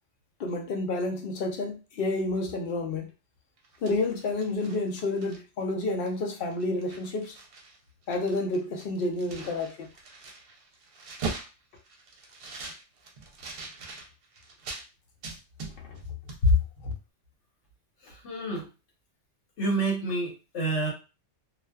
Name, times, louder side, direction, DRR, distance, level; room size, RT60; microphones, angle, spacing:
voice 1, 0.4-3.1 3.8-7.3 8.1-9.9 15.8-16.0 16.4-16.5 16.8-16.9, left 2 dB, 60° left, 0.7 m, -29 dB
sound 1, 3.6-5.6 6.1-6.2 6.5-7.8 8.0-14.9 15.2-16.0 16.3-16.4, right 4 dB, 60° right, 0.7 m, -41 dB
voice 2, 18.0-18.7 19.6-20.9, right 3 dB, 75° left, 1.2 m, -29 dB
2.4 x 2.3 x 2.2 m
omnidirectional pair, 1.2 m